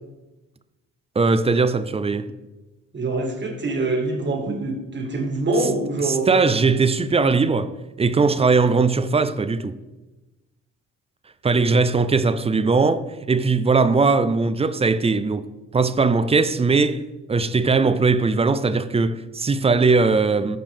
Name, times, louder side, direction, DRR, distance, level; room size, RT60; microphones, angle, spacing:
voice 1, 1.2-2.3 6.1-7.7 8.0-9.8 11.4-15.5 15.7-17.0 17.3-20.6, right 4 dB, 20° right, 0.5 m, -19 dB
voice 2, 2.9-6.5, right 2 dB, 35° right, 1.8 m, -25 dB
13.5 x 5.2 x 3.5 m
cardioid pair, 90°, 30 cm